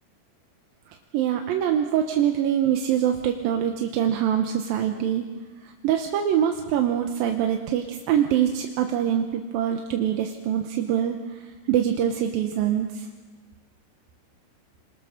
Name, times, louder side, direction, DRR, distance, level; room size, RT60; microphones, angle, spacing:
voice 1, 1.1-5.2 5.8-11.2 11.7-13.1, right 10 dB, 85° right, 4 dB, 2.8 m, -24 dB
30.0 x 22.0 x 6.4 m, 1.4 s
omnidirectional pair, 4.0 m